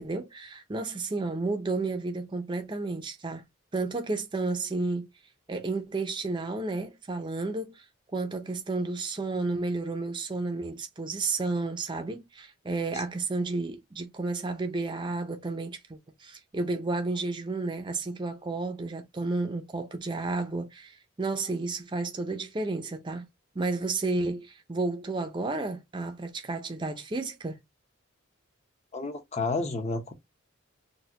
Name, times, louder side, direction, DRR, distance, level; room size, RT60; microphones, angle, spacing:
voice 1, 0.0-3.4 3.7-5.1 5.5-7.8 8.1-23.3 23.6-27.6, right 3 dB, 20° right, 0.5 m, -32 dB
voice 2, 28.9-30.1, left 3 dB, 30° left, 0.7 m, -31 dB
4.1 x 2.2 x 2.7 m
head